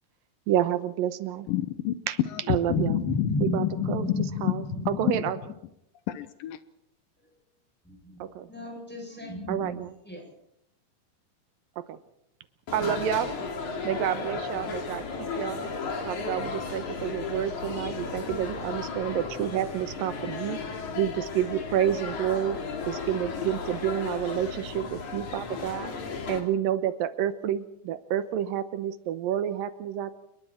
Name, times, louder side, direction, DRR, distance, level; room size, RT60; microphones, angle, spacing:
voice 1, 0.5-1.5 2.1-2.2 2.5-3.0 3.4-4.1 4.4-5.4 8.2-8.5 9.5-9.9 11.9-12.0 12.7-13.4 13.8-15.0 15.4-15.7 16.1-20.6 21.0-22.6 22.9-25.9 26.3-30.2, right 10 dB, 85° right, 2.7 m, -29 dB
voice 2, 1.5-1.9 2.7-4.9 6.1-6.6, left 14 dB, 80° left, 2.6 m, -29 dB
voice 3, 2.7-5.2 7.8-8.2 8.5-10.3, equal, 5° left, 7.8 m, -34 dB
sound 1, 12.7-26.4, left 4 dB, 60° left, 4.1 m, -35 dB
29.0 x 21.0 x 4.5 m
omnidirectional pair, 4.0 m